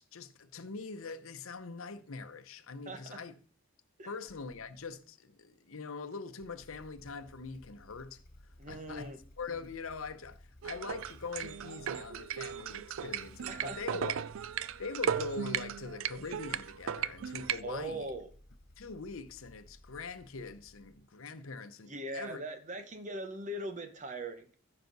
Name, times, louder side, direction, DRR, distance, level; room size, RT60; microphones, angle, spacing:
voice 1, 0.0-3.3 4.0-14.2 14.8-18.1 18.8-22.4, left 4 dB, 80° left, 0.8 m, -43 dB
voice 2, 2.9-3.2 4.0-4.1 8.6-9.2 13.5-14.0 17.6-18.3 21.9-24.5, right 1 dB, 35° right, 1.0 m, -40 dB
Motorcycle / Engine starting, 4.2-4.9 6.3-21.2, left 1 dB, 45° left, 1.9 m, -58 dB
sound 1, 10.6-17.6, right 8 dB, 70° right, 0.4 m, -36 dB
14.0 x 5.8 x 4.0 m
head